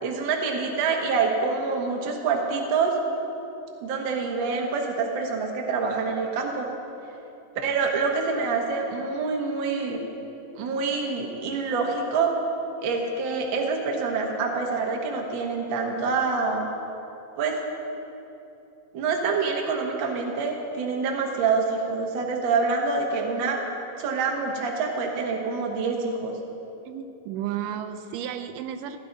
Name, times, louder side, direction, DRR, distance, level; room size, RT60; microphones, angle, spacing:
voice 1, 0.0-2.9 3.8-6.7 7.6-10.0 10.5-12.3 12.8-16.7 17.4-17.6 18.9-23.6 24.0-26.4, right 4 dB, 55° right, 1 dB, 1.4 m, -26 dB
voice 2, 26.9-29.0, right 10 dB, 80° right, 8 dB, 2.1 m, -33 dB
16.0 x 11.5 x 4.0 m, 2.9 s
omnidirectional pair, 3.8 m